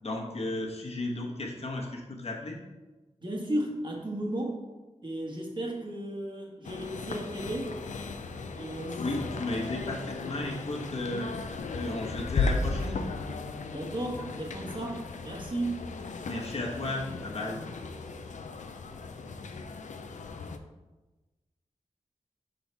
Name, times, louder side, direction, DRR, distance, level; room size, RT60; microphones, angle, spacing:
voice 1, 0.0-2.6 9.0-11.3 11.7-13.1 16.2-17.6, left 2 dB, 55° left, -1 dB, 1.2 m, -34 dB
voice 2, 3.2-4.6 5.0-7.7 8.5-9.0 13.7-15.9, right 1 dB, 40° right, -1 dB, 1.3 m, -34 dB
sound 1, 6.6-20.6, left 4 dB, 80° left, 0.4 m, -36 dB
5.4 x 4.0 x 4.6 m, 1.2 s
wide cardioid pair, 90°, 12 cm